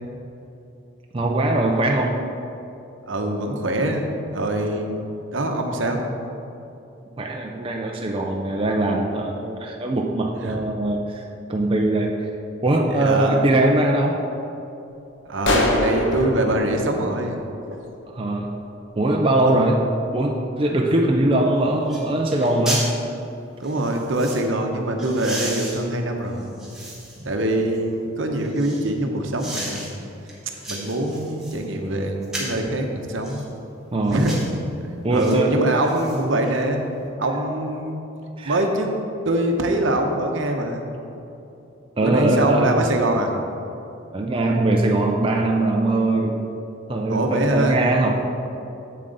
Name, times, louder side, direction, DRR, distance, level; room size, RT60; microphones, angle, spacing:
voice 1, 1.1-2.2 7.2-11.2 11.5-12.3 12.6-14.2 18.1-18.6 19.0-19.8 20.1-22.9 33.9-34.3 35.0-36.3 38.4-38.6 42.0-42.9 44.1-46.5 46.9-48.1, right 2 dB, 25° right, 0 dB, 0.4 m, -21 dB
voice 2, 3.1-5.0 5.3-6.0 10.4-10.6 12.9-13.5 15.2-17.3 17.7-17.8 19.4-19.6 23.6-26.5 27.2-29.9 30.6-33.4 34.1-34.3 34.8-36.8 37.2-38.0 38.4-38.9 39.2-40.8 42.0-43.3 47.1-47.8, right 1 dB, 65° right, 3 dB, 0.8 m, -24 dB
sound 1, 15.4-18.0, left 1 dB, 60° left, 0.9 m, -24 dB
sound 2, 21.4-21.5 21.9-22.0 22.3-22.9 23.6-24.4 25.0-27.3 27.8-28.9 29.4-29.9 30.3-31.6 32.2-32.6 33.2-33.5 34.1-34.5 35.2-35.4 35.7-36.5 36.9-37.0, right 1 dB, 5° right, 1.5 m, -34 dB
7.8 x 7.3 x 3.9 m, 2.8 s
head